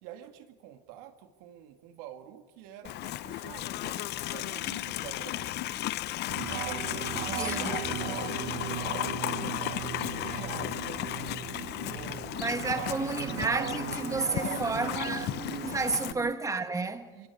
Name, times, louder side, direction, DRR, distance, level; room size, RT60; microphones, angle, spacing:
voice 1, 0.0-6.0 6.5-6.8 7.1-8.6 8.9-12.5 12.7-13.5 14.2-15.1 15.9-16.2 17.1-17.3, right 11 dB, 90° right, 2.1 m, -47 dB
Livestock farm animals working animals, 2.8-16.1, left 15 dB, 60° left, 0.6 m, -35 dB
sound 1, 6.3-16.3, right 12 dB, 55° right, 0.9 m, -38 dB
voice 2, 7.4-7.8 12.4-15.3 15.6-17.1, right 3 dB, 15° right, 1.6 m, -31 dB
26.0 x 22.5 x 4.9 m
cardioid pair, 110°, 20 cm